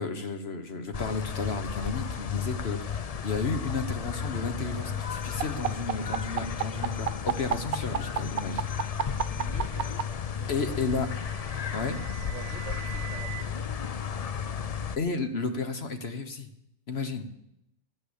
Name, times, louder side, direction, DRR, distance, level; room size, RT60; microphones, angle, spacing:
voice 1, 0.0-9.3 10.5-11.1 11.7-12.0 15.0-16.5 16.9-17.3, left 4 dB, 50° left, 1.3 m, -33 dB
sound 1, 0.9-15.0, left 7 dB, 70° left, 0.3 m, -33 dB
sound 2, 5.4-10.0 11.2-13.4, right 10 dB, 90° right, 1.2 m, -31 dB
voice 2, 9.3-10.1 10.3-10.8 12.2-14.7, right 7 dB, 60° right, 1.1 m, -48 dB
11.5 x 9.1 x 8.1 m
omnidirectional pair, 1.5 m